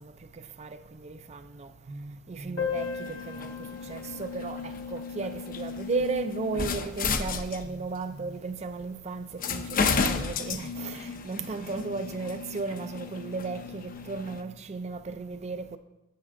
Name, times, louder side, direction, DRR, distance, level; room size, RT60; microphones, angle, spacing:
voice 1, 1.0-3.5 3.9-15.8, right 4 dB, 35° right, 0.4 m, -35 dB
Piano, 2.6-7.9 8.2-8.3 8.5-8.7 9.0-9.1 9.8-10.0, left 6 dB, 60° left, 1.1 m, -39 dB
sound 1, 2.7-8.0 8.8-8.9 9.4-14.4, left 5 dB, 45° left, 0.6 m, -33 dB
9.5 x 7.7 x 3.7 m
head